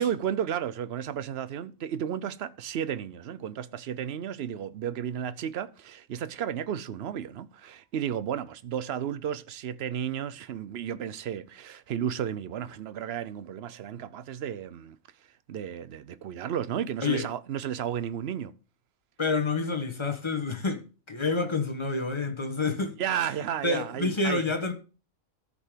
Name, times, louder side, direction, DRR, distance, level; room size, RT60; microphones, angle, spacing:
voice 1, 0.0-15.0 15.5-18.5 23.0-24.4, right 9 dB, 60° right, 0.8 m, -33 dB
voice 2, 19.2-23.0 23.6-24.7, left 3 dB, 20° left, 1.1 m, -28 dB
13.5 x 5.2 x 5.1 m
omnidirectional pair, 1.4 m